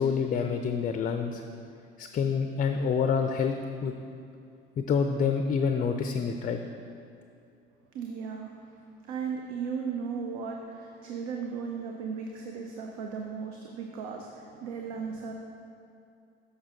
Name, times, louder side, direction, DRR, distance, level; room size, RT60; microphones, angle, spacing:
voice 1, 0.0-1.4 2.0-3.5 3.8-3.9 4.8-6.6, left 6 dB, 30° left, 6 dB, 0.4 m, -27 dB
voice 2, 7.9-8.5 9.1-15.3, right 6 dB, 70° right, 2 dB, 0.6 m, -36 dB
7.2 x 6.3 x 3.6 m, 2.5 s
hypercardioid pair, 60°, 29 cm